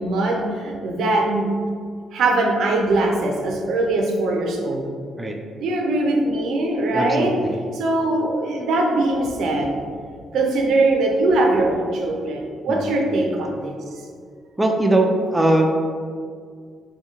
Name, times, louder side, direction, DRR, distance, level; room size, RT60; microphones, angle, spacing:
voice 1, 0.0-1.5 2.1-4.9 5.6-7.4 7.8-9.9 10.3-13.8, right 2 dB, 75° right, 1 dB, 0.5 m, -21 dB
voice 2, 6.9-7.7 12.7-12.9 14.6-15.7, right 2 dB, 15° right, 2 dB, 0.3 m, -20 dB
2.9 x 2.6 x 3.6 m, 2.1 s
cardioid pair, 90°, 0 cm